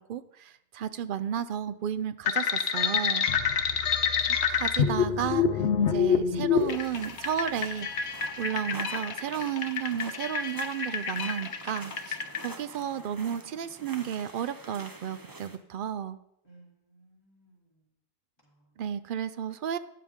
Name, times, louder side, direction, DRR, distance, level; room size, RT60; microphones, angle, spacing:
voice 1, 0.0-3.6 4.2-16.2 18.8-19.8, right 9 dB, 60° right, 14 dB, 0.6 m, -33 dB
sound 1, 2.3-12.5, left 7 dB, 85° left, 1.1 m, -27 dB
sound 2, 3.3-8.3, left 11 dB, 70° left, 0.8 m, -45 dB
voice 2, 3.5-4.1 16.4-17.8 18.5-18.6, right 2 dB, 25° left, -4 dB, 3.2 m, -60 dB
sound 3, 6.6-15.6, right 2 dB, 20° right, 0.8 m, -47 dB
12.0 x 9.6 x 3.6 m, 0.78 s
omnidirectional pair, 1.1 m